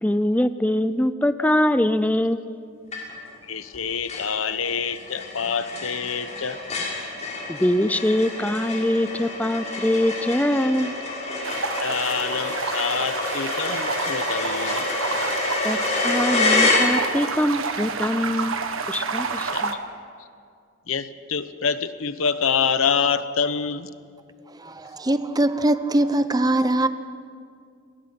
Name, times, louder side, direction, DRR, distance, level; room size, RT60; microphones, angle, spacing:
voice 1, 0.0-2.5 7.5-10.9 15.6-15.8 16.0-18.5 18.9-19.7, left 1 dB, 5° left, 0.5 m, -23 dB
sound 1, 2.9-3.4 3.7-3.8 4.1-17.4, left 2 dB, 35° left, 6.1 m, -27 dB
voice 2, 3.5-6.6 11.8-14.9 19.5-19.6 20.9-23.9, left 6 dB, 90° left, 1.0 m, -26 dB
sound 2, 11.4-19.7, right 4 dB, 85° right, 1.5 m, -29 dB
voice 3, 24.6-26.9, right 1 dB, 20° right, 0.8 m, -22 dB
29.0 x 20.5 x 6.0 m
head